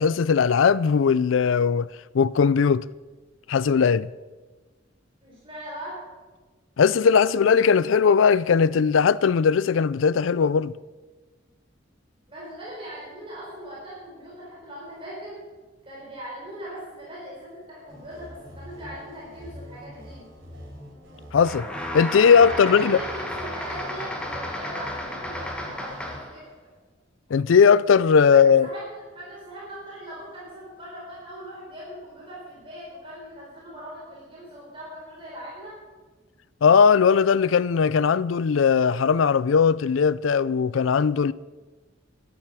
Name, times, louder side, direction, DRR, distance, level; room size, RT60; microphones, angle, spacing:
voice 1, 0.0-1.9 2.1-2.9 3.5-4.1 6.8-10.7 21.3-21.7 21.9-23.0 27.3-28.7 36.6-41.3, left 6 dB, 85° left, 0.4 m, -19 dB
voice 2, 5.2-6.0 12.3-15.4 15.8-20.3 22.4-26.4 28.3-35.8, right 1 dB, 30° right, 4.1 m, -40 dB
sound 1, 17.9-26.2, equal, 85° right, 4.5 m, -44 dB
sound 2, 21.4-26.4, left 1 dB, 5° left, 1.8 m, -33 dB
13.0 x 11.0 x 6.1 m
head